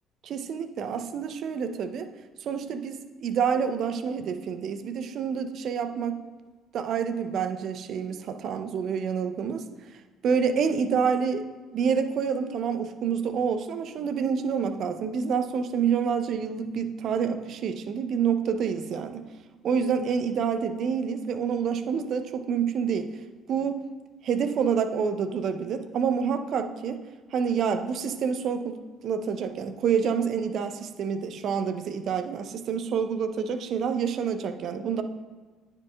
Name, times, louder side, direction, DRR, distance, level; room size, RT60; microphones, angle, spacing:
voice 1, 0.2-2.1 2.4-6.2 6.7-9.6 10.2-11.5 11.7-19.3 19.6-23.1 23.5-23.8 24.3-27.0 27.3-28.8 29.0-35.0, right 6 dB, 55° right, 9 dB, 0.5 m, -27 dB
9.6 x 6.8 x 2.3 m, 1.3 s
figure-of-eight pair, 50°, 0 cm